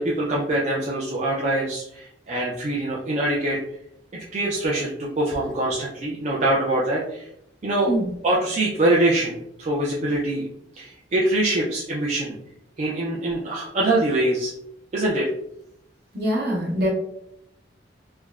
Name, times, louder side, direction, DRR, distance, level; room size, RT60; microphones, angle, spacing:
voice 1, 0.0-3.6 4.1-7.3 7.6-8.0 8.2-10.5 10.8-12.4 12.8-14.5 14.9-15.3, right 1 dB, 40° right, -4 dB, 0.4 m, -24 dB
voice 2, 16.1-16.9, equal, 55° right, -3 dB, 0.9 m, -23 dB
3.3 x 2.0 x 2.2 m, 0.76 s
head